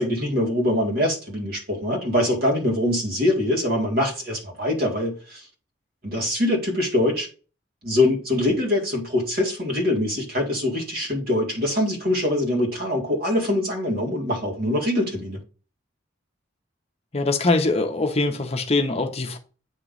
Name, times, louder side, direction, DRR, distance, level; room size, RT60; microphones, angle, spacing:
voice 1, 0.0-5.4 6.0-7.3 7.8-15.4, left 1 dB, 55° right, 1.9 m, -23 dB
voice 2, 17.1-19.4, left 2 dB, 35° left, 0.8 m, -23 dB
8.8 x 3.0 x 3.8 m
head